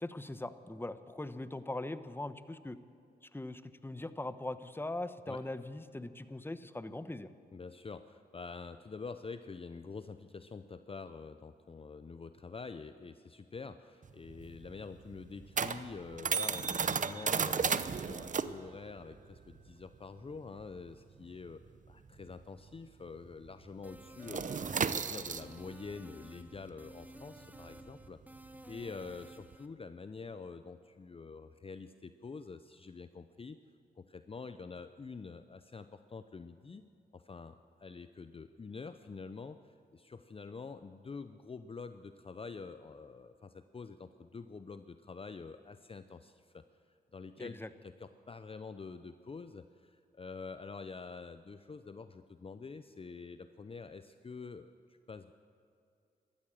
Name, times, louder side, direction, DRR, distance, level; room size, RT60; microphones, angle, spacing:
voice 1, 0.0-2.8 3.3-7.3 47.4-47.7, left 2 dB, 10° left, 12 dB, 0.9 m, -41 dB
voice 2, 7.5-21.6 21.9-24.5 24.9-33.6 34.0-36.8 37.1-46.6 47.1-55.3, left 4 dB, 30° left, 11 dB, 0.6 m, -47 dB
sound 1, 14.0-23.0 23.3-23.5 23.8-29.6, right 6 dB, 45° right, 0.7 m, -35 dB
sound 2, 23.8-29.7, right 1 dB, 10° right, 1.2 m, -54 dB
14.0 x 13.0 x 7.6 m, 2.4 s
cardioid pair, 55°, 18 cm